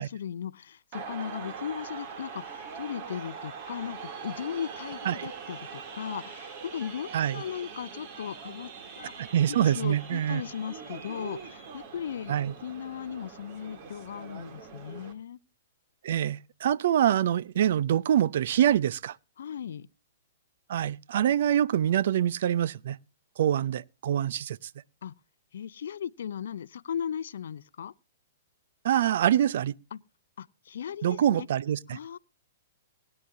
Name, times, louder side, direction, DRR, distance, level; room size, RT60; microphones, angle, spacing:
voice 1, 0.0-8.7 9.0-15.4 19.4-19.9 25.0-25.1 25.5-27.9 29.9-30.0 30.4-31.5 31.9-32.2, left 8 dB, 70° left, 0.5 m, -37 dB
sound 1, 0.9-15.1, right 6 dB, 45° right, 2.7 m, -42 dB
voice 2, 9.2-10.4 12.3-12.5 16.0-19.2 20.7-23.0 23.4-24.6 28.8-29.8 31.0-32.0, right 10 dB, 60° right, 0.5 m, -25 dB
20.0 x 9.9 x 2.6 m
hypercardioid pair, 120°, 0 cm